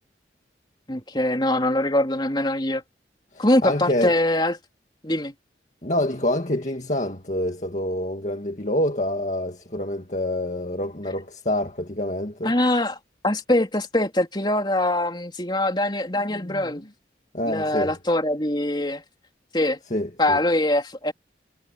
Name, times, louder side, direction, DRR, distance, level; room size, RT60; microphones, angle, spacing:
voice 1, 0.9-2.8 3.4-4.6 5.0-5.3 12.4-13.0 13.2-16.9 17.4-19.0 19.5-19.8 20.2-21.1, left 1 dB, 25° left, 3.9 m, -23 dB
voice 2, 3.3-4.2 5.8-12.5 16.3-16.8 17.3-17.9 19.9-20.4, left 1 dB, 40° left, 2.0 m, -27 dB
head